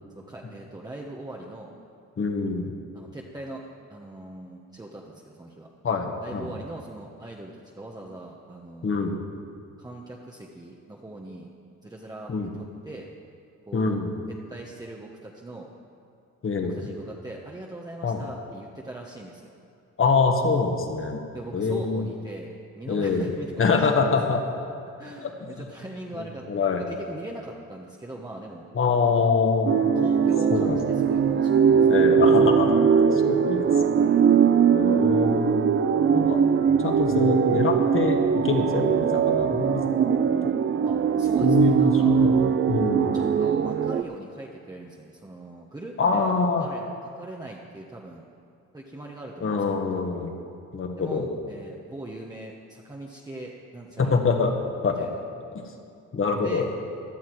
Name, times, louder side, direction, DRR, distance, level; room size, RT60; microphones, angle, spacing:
voice 1, 0.1-1.7 2.9-3.6 3.9-5.7 6.2-9.0 9.8-11.5 11.8-12.3 12.6-13.1 13.7-14.0 14.3-15.7 16.6-19.5 21.3-24.1 25.0-26.5 26.8-28.7 29.1-29.3 30.0-31.9 34.0-34.5 40.8-42.3 43.1-46.3 46.6-46.8 47.1-48.2 48.7-49.9 51.0-54.2 55.0-55.2 56.4-56.7, right 2 dB, 15° right, -2 dB, 1.2 m, -40 dB
voice 2, 2.2-2.7 5.8-6.5 8.8-9.2 12.3-12.5 13.7-14.1 16.4-16.9 18.0-18.2 20.0-21.2 21.5-22.1 22.9-23.3 23.6-24.6 25.2-25.3 25.6-25.7 26.5-26.8 28.7-29.7 30.5-30.8 31.8-33.6 33.9-34.0 34.7-35.7 36.1-36.4 36.8-38.2 38.4-40.2 41.4-42.3 42.7-43.2 46.0-46.7 49.4-50.4 50.7-51.3 54.0-54.5 54.8-55.0 55.5-55.7 56.1-56.7, left 4 dB, 45° left, 4 dB, 1.7 m, -25 dB
sound 1, 29.7-44.0, right 7 dB, 40° right, 0.6 m, -21 dB
16.5 x 11.0 x 4.7 m, 2.5 s
cardioid pair, 90°, 30 cm